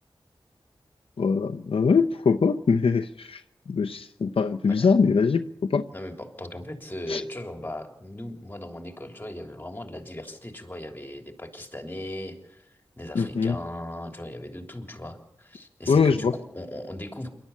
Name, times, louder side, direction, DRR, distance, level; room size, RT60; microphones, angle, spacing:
voice 1, 1.2-3.4 3.7-5.4 5.7-5.8 7.1-7.2 13.1-13.6 15.9-16.3, left 5 dB, 75° left, 6 dB, 0.8 m, -22 dB
voice 2, 5.9-17.3, left 1 dB, 20° left, 4 dB, 3.3 m, -38 dB
27.0 x 12.5 x 8.5 m, 0.80 s
wide cardioid pair, 75°, 9 cm